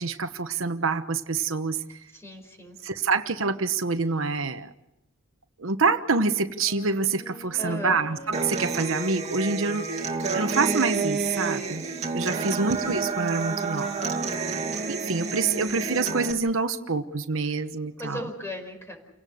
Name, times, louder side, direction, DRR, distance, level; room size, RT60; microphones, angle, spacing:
voice 1, 0.0-1.8 2.8-4.7 5.6-11.8 12.1-13.9 14.9-18.2, right 4 dB, 70° right, 9 dB, 1.2 m, -26 dB
voice 2, 2.1-2.8 7.6-8.0 12.3-12.7 17.4-17.6 18.0-19.0, left 1 dB, 15° left, 5 dB, 5.1 m, -37 dB
Wind instrument woodwind instrument, 6.6-13.2, equal, 40° left, 7.0 m, -44 dB
Human voice / Acoustic guitar, 8.3-16.3, right 4 dB, 35° right, 2.4 m, -29 dB
29.5 x 18.0 x 6.5 m, 0.88 s
head